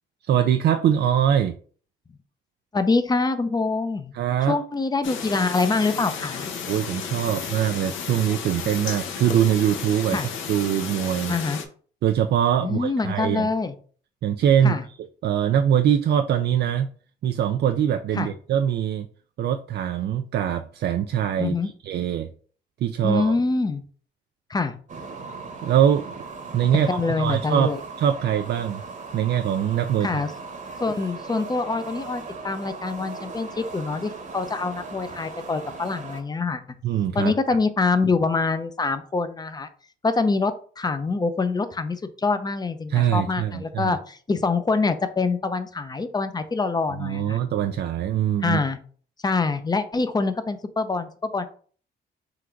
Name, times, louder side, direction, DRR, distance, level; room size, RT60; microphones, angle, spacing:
voice 1, 0.2-1.5 4.1-4.6 6.7-10.2 10.5-11.3 12.0-13.5 14.2-15.0 15.2-16.9 17.2-19.1 19.4-22.3 22.8-23.4 25.6-26.0 26.5-27.7 28.0-28.8 29.1-30.2 36.8-37.3 42.9-44.0 47.0-48.6, right 9 dB, 55° right, 7 dB, 0.4 m, -23 dB
voice 2, 2.7-4.1 4.5-6.5 10.1-10.3 11.3-11.6 12.6-13.7 14.6-14.8 18.2-18.3 21.4-21.7 23.0-23.8 24.5-24.7 26.9-27.8 30.0-30.3 30.8-36.6 37.1-39.7 40.0-47.4 48.4-48.8 49.2-51.5, left 3 dB, 20° left, 10 dB, 0.5 m, -25 dB
sound 1, 5.0-11.7, left 6 dB, 75° left, 0.8 m, -33 dB
sound 2, 24.9-36.2, right 4 dB, 40° right, 1.0 m, -38 dB
3.8 x 2.5 x 4.4 m, 0.44 s
cardioid pair, 90°, 20 cm